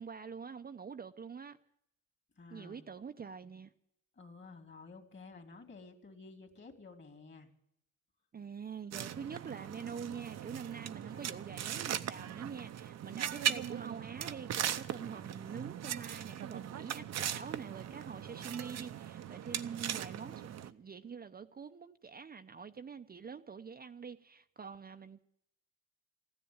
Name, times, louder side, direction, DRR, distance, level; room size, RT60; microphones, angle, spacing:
voice 1, 0.0-1.6 2.5-3.7 8.3-25.2, right 6 dB, 30° right, 0.7 m, -45 dB
voice 2, 2.4-2.9 4.2-7.5 11.1-11.4, left 3 dB, 35° left, 2.6 m, -53 dB
sound 1, 8.9-20.7, right 10 dB, 60° right, 0.8 m, -39 dB
15.0 x 10.5 x 8.7 m
cardioid pair, 90°, 30 cm